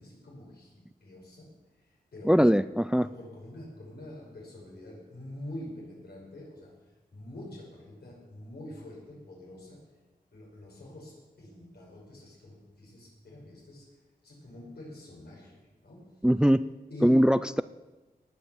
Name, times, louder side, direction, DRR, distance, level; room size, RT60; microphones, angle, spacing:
voice 1, 0.0-2.6 3.0-6.8 7.1-9.9 10.3-13.9 14.2-16.2 16.9-17.5, left 1 dB, 85° left, -3 dB, 5.7 m, -45 dB
voice 2, 2.3-3.1 16.2-16.7 17.0-17.6, equal, 5° right, 15 dB, 0.3 m, -21 dB
19.0 x 6.3 x 7.2 m, 1.1 s
wide cardioid pair, 85°, 17 cm